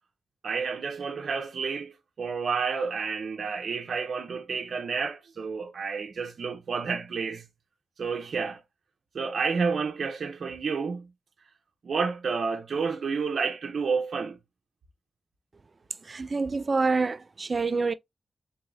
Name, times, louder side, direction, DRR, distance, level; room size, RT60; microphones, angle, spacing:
voice 1, 0.4-7.4 8.0-8.6 9.1-11.1 11.8-14.4, right 5 dB, 75° right, 0.8 m, -30 dB
voice 2, 16.1-17.9, right 4 dB, 50° right, 0.5 m, -27 dB
4.0 x 2.8 x 3.8 m
cardioid pair, 55°, 0 cm